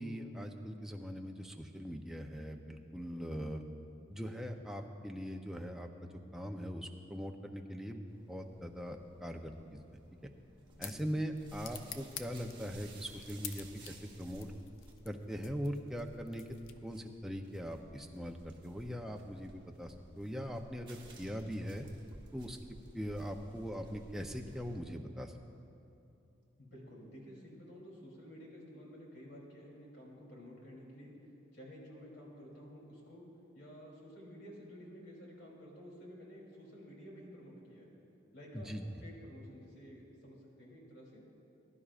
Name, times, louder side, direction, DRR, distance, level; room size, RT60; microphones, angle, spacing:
voice 1, 0.0-3.6 4.1-9.8 10.8-14.5 15.0-16.4 16.8-21.8 22.3-22.6 22.9-25.3 38.5-38.8, equal, ahead, 3 dB, 0.5 m, -41 dB
sound 1, 8.1-24.8, right 2 dB, 25° right, 1.2 m, -57 dB
sound 2, 10.2-17.1, left 9 dB, 70° left, 0.6 m, -51 dB
voice 2, 26.6-31.1 31.5-33.2 33.5-37.9 38.3-38.7 39.0-41.2, equal, 55° left, -3 dB, 3.0 m, -52 dB
20.5 x 11.5 x 2.4 m, 2.7 s
head